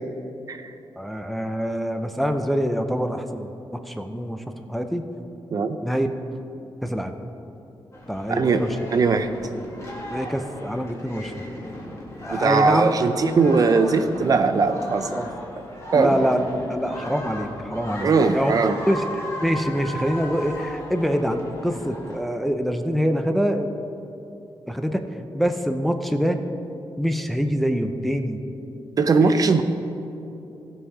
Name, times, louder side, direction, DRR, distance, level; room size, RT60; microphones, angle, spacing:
voice 1, 1.0-5.0 5.8-6.1 6.8-7.1 8.1-8.8 10.1-11.5 12.2-12.9 13.2-13.9 15.1-15.3 15.9-18.5 18.8-23.7 24.7-25.1 25.3-26.4 27.0-28.4 29.2-29.4, equal, ahead, 6 dB, 0.5 m, -25 dB
sound 1, 7.9-22.2, left 1 dB, 35° left, 1.9 m, -36 dB
voice 2, 8.3-8.6 8.9-9.3 12.3-15.2 15.9-16.3 18.0-18.8 29.0-29.6, right 4 dB, 45° right, 9 dB, 0.6 m, -20 dB
15.5 x 5.6 x 4.8 m, 2.8 s
cardioid pair, 105°, 9 cm